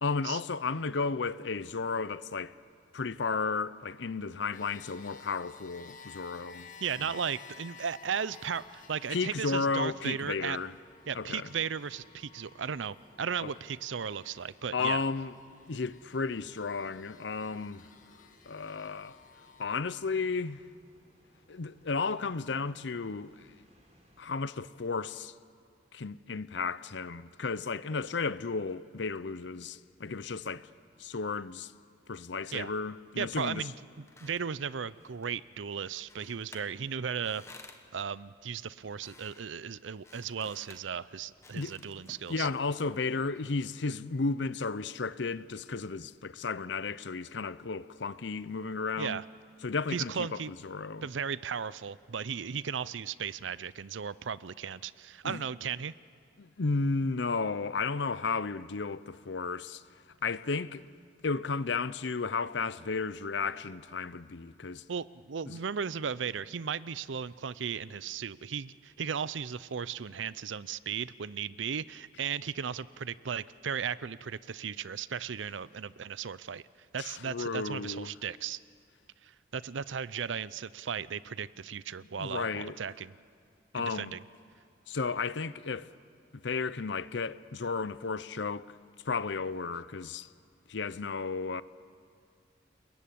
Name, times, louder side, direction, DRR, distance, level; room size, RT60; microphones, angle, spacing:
voice 1, 0.0-2.5 2.9-6.7 7.0-7.1 9.1-10.7 11.1-11.5 13.4-13.5 14.7-15.3 15.7-17.9 18.5-19.2 19.6-20.6 21.5-23.5 24.2-25.3 25.9-30.7 31.0-31.7 32.1-33.7 41.5-41.7 42.3-49.2 49.6-51.1 55.2-55.4 56.4-59.8 60.2-60.8 61.2-64.8 65.5-65.6 77.0-78.1 82.2-82.8 83.7-84.2 84.9-85.9 86.4-88.7 89.1-90.3 90.7-91.6, left 4 dB, 75° left, 0.7 m, -33 dB
sound 1, 4.5-19.6, left 6 dB, 45° left, 1.5 m, -55 dB
voice 2, 6.8-10.6 11.1-15.0 32.5-32.7 33.2-37.4 37.9-42.5 49.0-49.2 49.9-50.5 51.0-55.9 64.9-76.6 76.9-78.6 79.2-83.1 83.7-84.2, right 7 dB, 85° right, 0.6 m, -36 dB
sound 2, 8.6-24.3, equal, 35° right, 4.8 m, -64 dB
sound 3, 33.7-43.4, left 2 dB, 15° left, 1.3 m, -56 dB
29.0 x 21.0 x 8.5 m
head